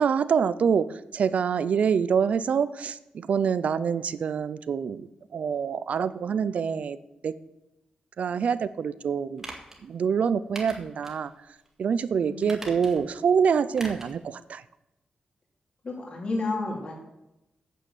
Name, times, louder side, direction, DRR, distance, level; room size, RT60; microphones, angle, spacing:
voice 1, 0.0-7.0 7.2-7.3 8.2-9.4 9.8-11.3 11.8-14.6, right 6 dB, 60° right, 15 dB, 0.5 m, -26 dB
sound 1, 9.4-9.8 10.5-11.2 11.6-11.7 12.4-13.1 13.7-14.2 14.5-14.6, right 2 dB, 15° right, 2.0 m, -41 dB
voice 2, 15.8-16.9, left 3 dB, 40° left, -2 dB, 2.8 m, -31 dB
9.0 x 6.9 x 8.0 m, 0.92 s
wide cardioid pair, 165°, 3 cm